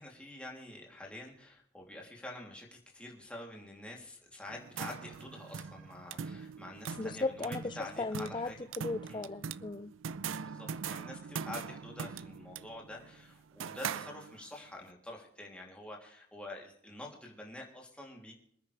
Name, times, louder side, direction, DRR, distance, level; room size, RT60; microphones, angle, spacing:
voice 1, 0.0-8.6 9.1-9.2 10.4-18.3, left 1 dB, 5° left, 3.1 m, -47 dB
sound 1, 4.5-14.6, right 6 dB, 80° right, 0.5 m, -42 dB
voice 2, 7.0-9.9, left 3 dB, 25° left, 0.4 m, -37 dB
26.5 x 9.5 x 3.4 m
head